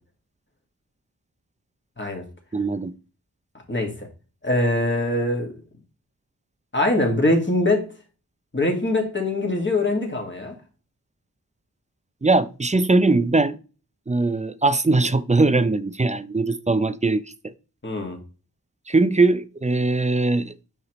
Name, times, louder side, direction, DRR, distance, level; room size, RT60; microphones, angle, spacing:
voice 1, 2.5-2.9 12.2-13.6 14.1-17.3 18.9-20.5, right 3 dB, 20° right, 0.4 m, -20 dB
voice 2, 3.7-4.1 4.4-5.6 6.7-7.9 8.5-10.6 17.8-18.2, left 2 dB, 30° left, 1.8 m, -23 dB
5.7 x 5.7 x 3.0 m
wide cardioid pair, 50°, 38 cm